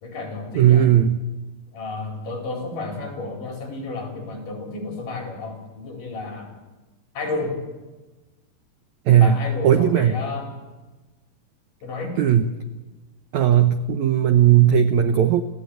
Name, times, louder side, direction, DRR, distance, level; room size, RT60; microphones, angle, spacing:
voice 1, 0.0-0.9 1.7-6.5 7.1-7.6 9.1-10.5 11.8-12.2, left 3 dB, 55° left, 2 dB, 5.9 m, -31 dB
voice 2, 0.5-1.2 9.1-9.4 9.6-10.1 12.2-12.5 13.3-15.4, right 10 dB, 80° right, 10 dB, 1.6 m, -16 dB
30.0 x 14.5 x 9.3 m, 1.2 s
omnidirectional pair, 4.5 m